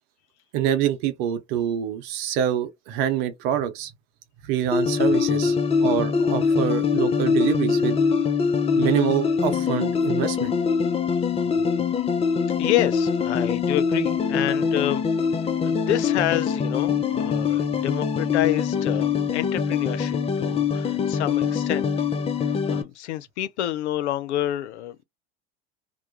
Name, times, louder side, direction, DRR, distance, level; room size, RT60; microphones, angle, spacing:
voice 1, 0.5-3.9 4.4-5.6 5.8-8.0 8.8-10.5, right 10 dB, 65° right, 0.8 m, -25 dB
sound 1, 4.7-22.8, left 6 dB, 20° left, 0.4 m, -23 dB
voice 2, 12.6-15.0 15.6-21.9 22.7-25.0, left 13 dB, 85° left, 0.5 m, -28 dB
2.2 x 2.1 x 2.8 m
hypercardioid pair, 80°, 33 cm